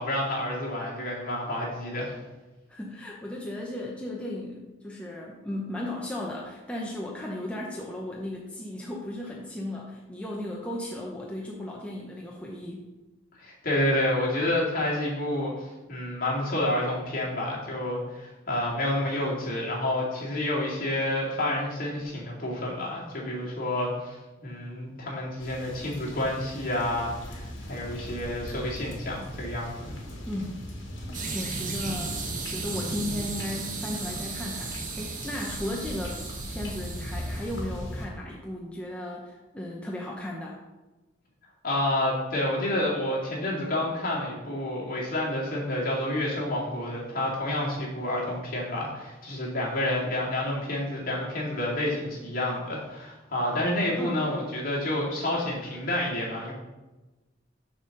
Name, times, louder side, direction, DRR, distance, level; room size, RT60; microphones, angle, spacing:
voice 1, 0.0-2.2 13.4-24.2 24.4-29.9 41.6-56.5, left 1 dB, 45° left, -4 dB, 2.3 m, -29 dB
voice 2, 2.7-12.8 30.3-30.6 31.3-32.1 32.5-36.2 36.5-40.6 54.0-54.2, left 1 dB, 5° left, -2 dB, 0.7 m, -35 dB
sound 1, 25.4-38.1, equal, 70° left, 1.7 m, -39 dB
sound 2, 31.1-37.6, right 4 dB, 40° right, 1.1 m, -35 dB
6.6 x 4.2 x 6.5 m, 1.1 s
head